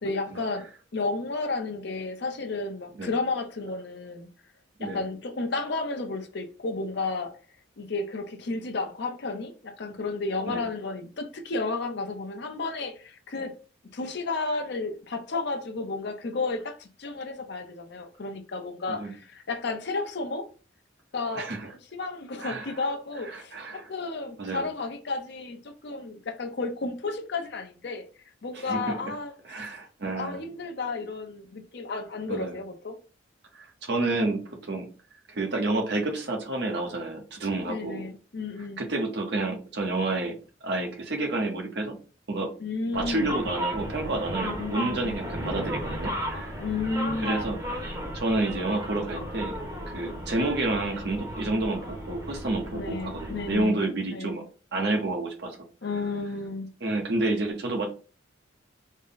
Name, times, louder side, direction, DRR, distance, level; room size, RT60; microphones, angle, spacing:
voice 1, 0.0-4.3 4.8-7.3 7.8-13.5 13.9-20.5 21.1-28.0 28.4-29.8 30.1-33.0 37.7-38.8 42.6-43.4 44.4-45.2 46.6-47.4 52.7-53.8 54.1-54.3 55.8-56.7, left 3 dB, 60° left, 0.6 m, -32 dB
voice 2, 21.3-21.7 22.4-22.7 23.3-23.9 24.4-24.6 28.5-29.0 29.5-30.4 32.3-32.6 33.5-34.9 35.3-38.1 38.8-42.0 42.3-42.5 42.9-46.6 47.2-49.6 49.9-54.4 54.7-55.6 56.8-57.9, right 2 dB, 60° right, 0.9 m, -29 dB
sound 1, 42.9-53.6, equal, 15° right, 1.0 m, -35 dB
3.6 x 2.1 x 3.9 m
head